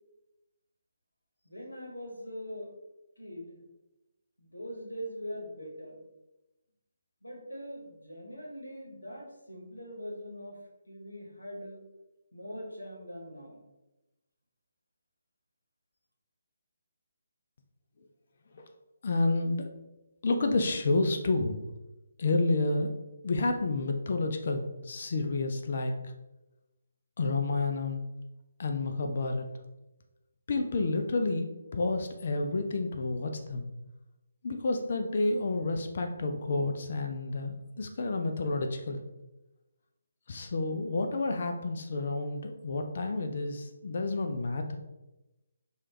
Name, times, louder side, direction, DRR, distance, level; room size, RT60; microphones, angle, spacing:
voice 1, 1.4-2.7 3.2-3.6 4.4-6.1 7.2-10.6 10.9-11.8 12.3-13.6, equal, 85° left, -1 dB, 0.9 m, -42 dB
voice 2, 19.0-19.7 20.2-21.6 22.2-22.9 23.2-25.9 27.2-28.0 28.6-29.5 30.5-31.5 31.7-33.7 34.4-39.0 40.3-44.8, left 3 dB, 45° left, 5 dB, 0.3 m, -30 dB
3.2 x 2.3 x 2.9 m, 1.0 s
figure-of-eight pair, 145°, 0 cm